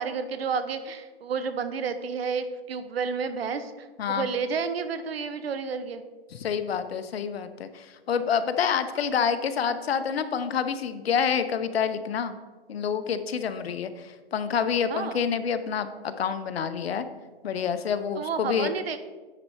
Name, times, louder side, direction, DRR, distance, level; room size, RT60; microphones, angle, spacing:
voice 1, 0.0-6.0 14.9-15.2 18.2-19.0, right 5 dB, 70° right, 11 dB, 0.9 m, -31 dB
voice 2, 6.3-12.4 12.7-17.1 17.4-18.7, left 7 dB, 75° left, 10 dB, 0.8 m, -28 dB
9.6 x 4.2 x 4.7 m, 1.3 s
hypercardioid pair, 160°, 31 cm